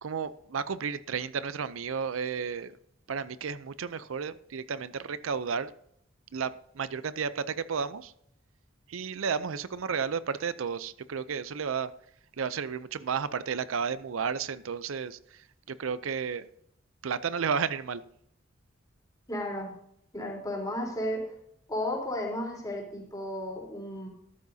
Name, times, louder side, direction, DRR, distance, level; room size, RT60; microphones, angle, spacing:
voice 1, 0.0-2.7 3.1-5.7 6.3-8.1 8.9-11.9 12.4-15.4 15.7-16.5 17.0-18.0, right 6 dB, 85° right, 15 dB, 0.5 m, -32 dB
voice 2, 19.3-19.7 20.1-21.3 21.7-24.1, left 1 dB, 20° left, -1 dB, 3.7 m, -33 dB
13.5 x 12.0 x 2.7 m, 0.70 s
head